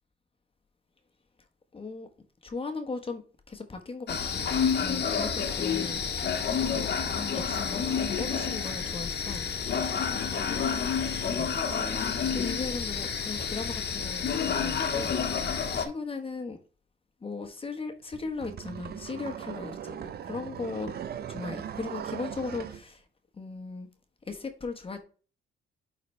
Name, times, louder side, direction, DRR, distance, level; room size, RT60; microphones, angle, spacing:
voice 1, 1.7-2.1 2.4-3.2 3.5-4.5 4.8-6.0 6.7-6.9 7.3-7.8 8.1-9.8 10.1-10.7 11.6-16.6 17.2-20.9 21.3-23.1 23.3-23.9 24.2-25.0, left 4 dB, 25° left, 1.3 m, -38 dB
sound 1, 4.1-15.9, left 6 dB, 55° left, 1.5 m, -29 dB
sound 2, 18.1-22.8, right 9 dB, 55° right, 0.6 m, -39 dB
9.7 x 4.1 x 3.2 m
cardioid pair, 90°, 20 cm